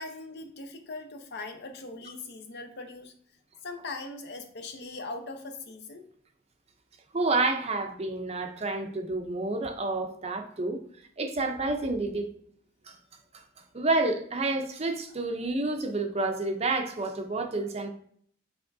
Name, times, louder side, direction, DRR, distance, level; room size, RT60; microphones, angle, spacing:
voice 1, 0.0-3.1 3.6-6.1, left 3 dB, 55° left, 6 dB, 0.7 m, -40 dB
voice 2, 7.1-10.8 11.2-12.3 12.9-13.0 13.3-13.4 13.7-17.9, right 2 dB, 30° right, 5 dB, 0.6 m, -29 dB
5.9 x 3.4 x 2.6 m, 0.62 s
head